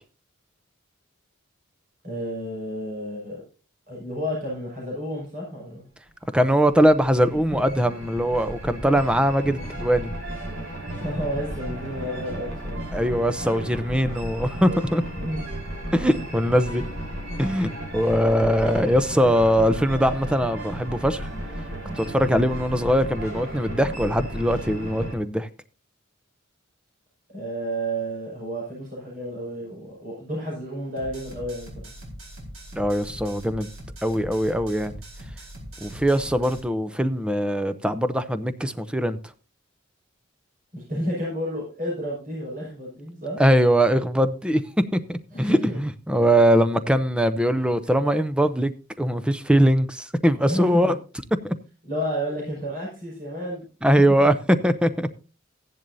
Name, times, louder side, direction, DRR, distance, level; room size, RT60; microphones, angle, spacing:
voice 1, 2.0-3.4 3.9-5.9 7.5-7.7 10.9-12.8 15.1-15.4 27.3-31.9 40.7-43.4 45.3-45.8 50.5-50.9 51.8-53.6 54.2-54.3, equal, 40° right, 5.7 m, -31 dB
sound 1, 6.2-25.2, right 1 dB, 60° right, 4.1 m, -34 dB
voice 2, 6.3-10.1 12.9-15.0 15.9-16.8 17.4-21.3 22.0-25.5 32.8-33.7 34.0-35.0 35.8-39.2 43.4-44.6 44.9-48.7 49.0-51.0 51.4-51.5 53.8-54.3 54.6-55.1, equal, 5° right, 0.6 m, -21 dB
sound 2, 31.0-36.6, equal, 85° right, 4.5 m, -41 dB
15.0 x 10.5 x 2.7 m
head